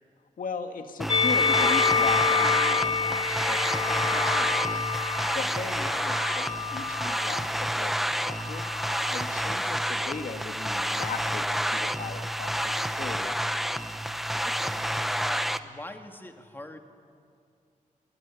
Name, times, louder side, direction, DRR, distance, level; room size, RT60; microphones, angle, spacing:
voice 1, 0.4-13.5, left 5 dB, 80° left, 6 dB, 1.9 m, -38 dB
sound 1, 1.0-15.6, equal, ahead, 0.9 m, -29 dB
Musical instrument, 1.1-7.5 8.3-9.3, left 5 dB, 40° left, 0.7 m, -28 dB
voice 2, 14.4-14.8 15.2-16.8, left 1 dB, 15° left, 5 dB, 2.0 m, -43 dB
25.0 x 23.5 x 9.8 m, 2.4 s
wide cardioid pair, 115°, 14 cm